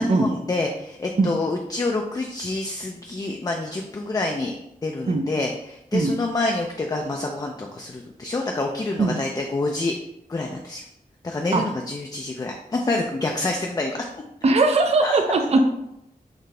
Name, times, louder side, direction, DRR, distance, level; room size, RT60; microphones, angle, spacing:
voice 1, 0.0-4.6 4.8-9.9 10.3-10.8 11.2-14.0 15.0-15.2, left 2 dB, 25° left, 2 dB, 0.3 m, -27 dB
voice 2, 14.4-15.6, right 3 dB, 45° right, 4 dB, 0.4 m, -19 dB
4.0 x 2.7 x 3.2 m, 0.82 s
wide cardioid pair, 90°, 16 cm